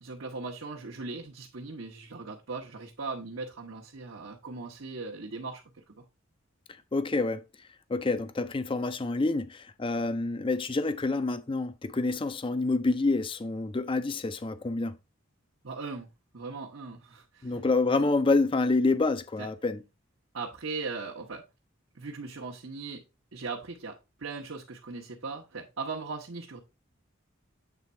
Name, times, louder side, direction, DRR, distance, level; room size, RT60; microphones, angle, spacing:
voice 1, 0.0-6.0 15.6-16.1 16.3-17.6 19.4-19.5 20.3-21.4 21.9-23.0 23.3-26.6, right 4 dB, 70° right, 1.1 m, -39 dB
voice 2, 6.9-7.4 7.9-15.0 17.4-19.8, left 3 dB, 25° left, 0.4 m, -27 dB
8.2 x 3.5 x 4.2 m
head